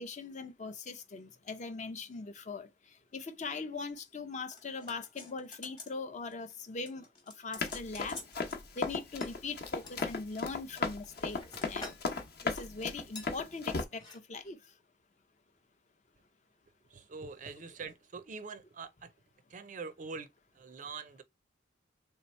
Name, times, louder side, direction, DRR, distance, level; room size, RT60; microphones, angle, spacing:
voice 1, 0.0-8.2 8.8-11.4 11.7-12.0 12.4-14.6, left 4 dB, 40° left, 0.5 m, -41 dB
sound 1, 4.5-6.0 6.3-6.6 6.9-8.6 9.2-10.1 10.8-12.1 12.4-12.6 13.2-13.3 13.9-14.2 14.5-14.6, left 3 dB, 20° left, 1.0 m, -49 dB
Run, 7.6-13.8, left 4 dB, 55° left, 0.9 m, -35 dB
voice 2, 16.9-18.9 19.5-20.3 20.6-21.2, right 4 dB, 40° right, 0.4 m, -44 dB
3.4 x 2.9 x 4.3 m
head